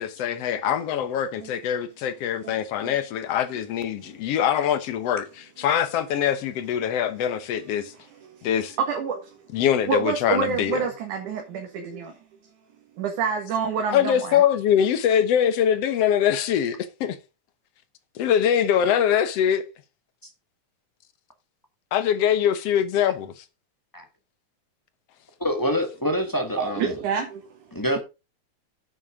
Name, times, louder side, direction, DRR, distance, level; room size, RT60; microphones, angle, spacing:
voice 1, 0.0-7.9 8.4-8.8 9.5-10.9 13.9-17.2 18.2-19.7 21.9-23.4, left 9 dB, 65° left, 1.9 m, -23 dB
voice 2, 8.8-9.2 9.8-12.1 13.0-14.4 26.6-27.4, right 5 dB, 85° right, 3.2 m, -27 dB
voice 3, 25.4-26.9 27.7-28.0, equal, 25° left, 0.4 m, -26 dB
9.6 x 6.7 x 5.0 m
omnidirectional pair, 3.4 m